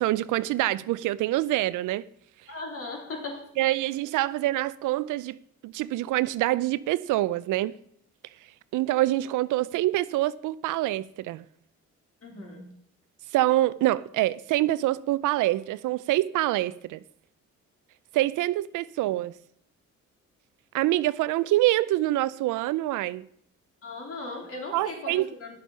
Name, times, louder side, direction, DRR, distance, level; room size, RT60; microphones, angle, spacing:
voice 1, 0.0-2.0 3.6-5.4 5.6-7.7 8.7-11.4 13.3-17.0 18.1-19.3 20.7-23.3 24.7-25.2, right 16 dB, 85° right, 0.5 m, -25 dB
voice 2, 2.5-3.4 12.2-12.7 23.8-25.6, left 2 dB, 50° left, 3.5 m, -37 dB
10.0 x 7.5 x 5.5 m
cardioid pair, 90°, 30 cm